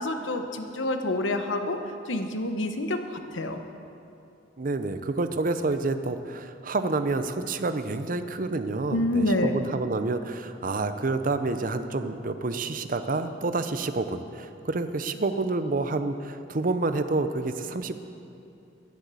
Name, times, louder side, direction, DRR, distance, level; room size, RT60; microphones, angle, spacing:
voice 1, 0.0-1.8 2.1-3.6 8.9-9.6, left 1 dB, 90° left, 6 dB, 1.1 m, -27 dB
voice 2, 4.6-17.9, right 3 dB, 45° right, 10 dB, 0.7 m, -28 dB
11.0 x 10.5 x 8.3 m, 2.7 s
head